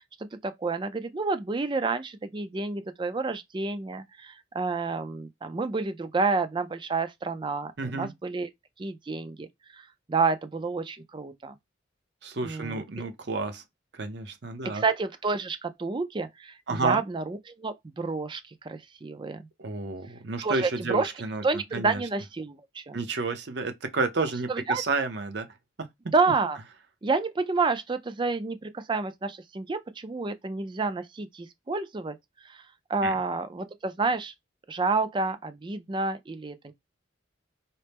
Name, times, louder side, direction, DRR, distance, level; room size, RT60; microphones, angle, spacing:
voice 1, 0.0-8.5 8.8-9.5 9.7-11.5 12.4-12.8 14.7-19.4 20.4-21.1 21.4-23.0 24.5-24.8 26.1-26.6 27.0-32.2 32.4-32.6 32.9-34.3 34.7-36.7, right 4 dB, 25° right, 0.4 m, -29 dB
voice 2, 7.8-8.1 12.2-13.6 13.9-14.8 16.7-17.0 19.6-22.0 22.9-25.5 33.0-33.1, right 3 dB, 60° right, 0.6 m, -30 dB
4.2 x 2.0 x 3.3 m
head